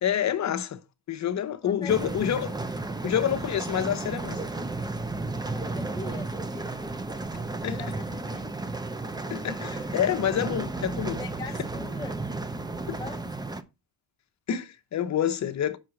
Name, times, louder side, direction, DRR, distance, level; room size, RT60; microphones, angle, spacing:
voice 1, 0.0-0.8 1.1-2.6 3.0-4.4 7.6-7.8 9.3-11.2 12.9-13.0 14.5-15.8, left 9 dB, 45° left, 0.9 m, -27 dB
sound 1, 1.9-13.6, right 3 dB, 10° right, 0.6 m, -33 dB
voice 2, 5.3-6.9 7.3-8.5 11.2-12.2 12.9-13.2, left 3 dB, 10° left, 0.9 m, -42 dB
5.8 x 4.6 x 6.3 m
cardioid pair, 130°, 39 cm